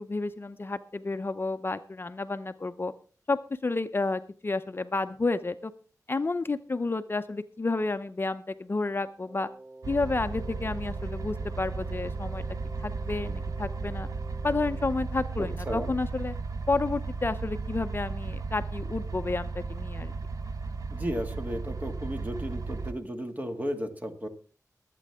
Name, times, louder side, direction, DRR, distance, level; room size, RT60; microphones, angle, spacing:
voice 1, 0.0-2.9 3.3-5.7 6.1-9.5 9.9-12.4 12.8-14.1 14.4-16.3 16.7-20.1, left 3 dB, 35° left, 10 dB, 0.6 m, -31 dB
Wind instrument woodwind instrument, 9.2-15.0, right 2 dB, 45° right, 2.0 m, -48 dB
sound 1, 9.8-22.9, right 4 dB, 60° right, 1.1 m, -35 dB
voice 2, 15.4-15.9 20.9-24.3, equal, 25° right, 5 dB, 2.0 m, -34 dB
23.5 x 8.4 x 3.5 m, 0.38 s
wide cardioid pair, 85°, 6 cm